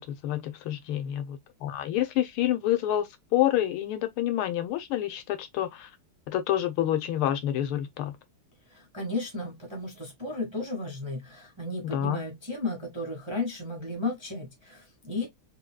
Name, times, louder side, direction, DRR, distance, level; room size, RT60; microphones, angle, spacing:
voice 1, 0.0-5.9 6.3-8.2 11.8-12.2, left 12 dB, 80° left, 1.5 m, -28 dB
voice 2, 8.7-15.3, left 2 dB, 20° right, 0.9 m, -34 dB
4.2 x 3.4 x 2.2 m
omnidirectional pair, 2.4 m